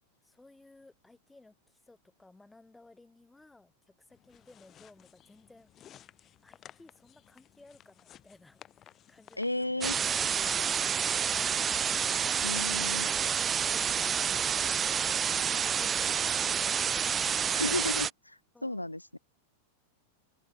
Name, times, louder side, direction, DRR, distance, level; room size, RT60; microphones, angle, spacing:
voice 1, 0.2-5.7 6.4-11.4 12.4-15.0 15.5-17.0 17.3-17.6 18.5-19.0, left 2 dB, 5° left, 3.7 m, -58 dB
sound 1, 4.1-16.5, left 11 dB, 30° left, 1.0 m, -58 dB
voice 2, 9.4-10.0 12.4-13.1 17.5-19.2, left 1 dB, 85° left, 0.3 m, -34 dB
sound 2, 9.8-18.1, right 7 dB, 20° right, 0.3 m, -29 dB
figure-of-eight pair, 90°, 0 cm